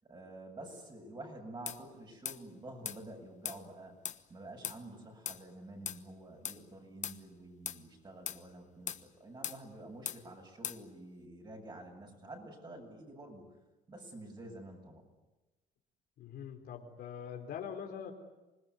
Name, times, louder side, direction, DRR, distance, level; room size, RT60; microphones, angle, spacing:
voice 1, 0.0-4.0 4.3-13.5 13.9-15.1, right 1 dB, 25° right, 2 dB, 8.0 m, -49 dB
sound 1, 1.7-1.8 2.3-2.4 2.9-3.0 3.4-3.6 4.0-4.2 4.6-4.8 5.3-5.4 5.9-6.0 6.4-6.6 7.0-7.2 7.7-7.8 8.3-8.4 8.9-9.0 9.4-9.6 10.1-10.2 10.6-10.8, left 9 dB, 45° left, 1.2 m, -39 dB
voice 2, 16.2-18.1, left 8 dB, 65° left, 3 dB, 4.2 m, -43 dB
27.0 x 19.5 x 9.7 m, 1.1 s
cardioid pair, 110°, 17 cm